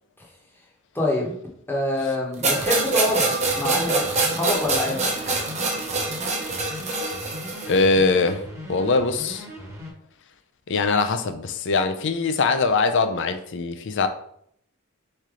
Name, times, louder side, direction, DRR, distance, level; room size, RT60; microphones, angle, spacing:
voice 1, 0.9-1.3 1.7-5.1, left 2 dB, 10° left, -2 dB, 1.0 m, -26 dB
sound 1, 2.4-7.8, right 3 dB, 35° right, 0.8 m, -25 dB
sound 2, 3.4-9.9, left 1 dB, 15° right, 1.1 m, -38 dB
voice 2, 7.7-8.4 8.7-9.5 10.7-14.1, left 3 dB, 60° left, 8 dB, 0.5 m, -22 dB
4.2 x 3.3 x 3.7 m, 0.68 s
head